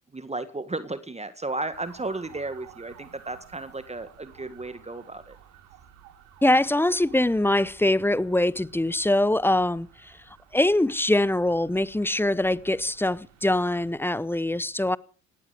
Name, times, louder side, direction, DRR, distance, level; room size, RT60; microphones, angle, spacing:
voice 1, 0.1-5.4, right 2 dB, 15° right, 1.7 m, -34 dB
sound 1, 1.7-14.0, right 10 dB, 75° right, 3.4 m, -53 dB
voice 2, 6.4-10.1 10.5-15.0, left 1 dB, 5° left, 0.7 m, -23 dB
18.0 x 11.5 x 6.5 m
hypercardioid pair, 50°, 39 cm